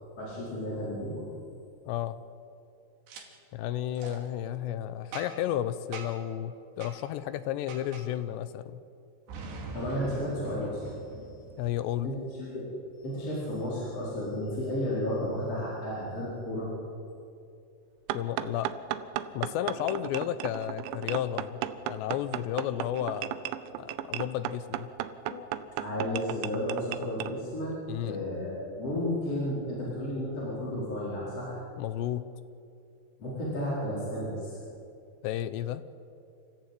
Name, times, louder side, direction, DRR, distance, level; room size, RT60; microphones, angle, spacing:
voice 1, 0.2-1.3 9.7-11.4 12.0-12.7 13.0-16.7 25.8-27.7 28.0-31.6 33.2-34.6, left 1 dB, 30° left, -6 dB, 5.3 m, -33 dB
voice 2, 1.9-2.2 3.5-8.8 11.6-12.1 18.1-18.7 19.3-23.3 23.8-24.9 25.3-25.5 27.9-28.2 31.8-32.3 35.2-35.8, left 11 dB, 80° left, 12 dB, 2.7 m, -32 dB
Boom, 3.1-3.2 4.0-4.2 5.1-5.5 5.9-6.3 6.8-7.0 7.7-8.1 9.3-12.0, right 3 dB, 65° right, 4.7 m, -42 dB
sound 1, 18.1-27.3, right 12 dB, 80° right, 3.1 m, -35 dB
27.5 x 15.0 x 9.2 m, 2.5 s
omnidirectional pair, 5.4 m